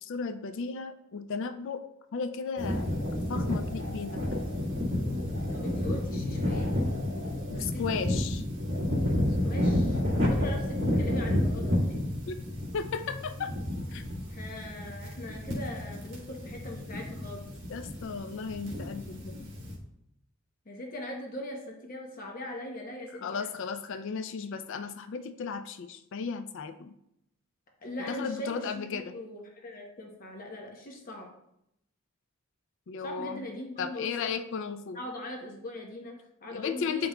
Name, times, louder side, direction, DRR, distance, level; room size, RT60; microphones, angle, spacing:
voice 1, 0.0-1.8 2.1-2.9 3.3-4.5 7.5-8.4 10.3-10.5 12.3-12.4 12.7-13.5 13.9-14.0 17.7-19.5 23.2-27.0 28.1-29.2 32.9-33.5 33.8-35.0 36.5-37.1, left 5 dB, 60° left, 9 dB, 0.3 m, -35 dB
sound 1, 2.6-19.7, left 1 dB, 55° right, 1.7 m, -31 dB
voice 2, 5.5-6.8 7.5-7.8 9.3-12.0 14.3-17.4 20.7-23.5 27.8-31.3 33.0-34.3 34.9-37.1, left 1 dB, 40° left, 0 dB, 0.8 m, -41 dB
7.7 x 5.4 x 2.3 m, 0.79 s
head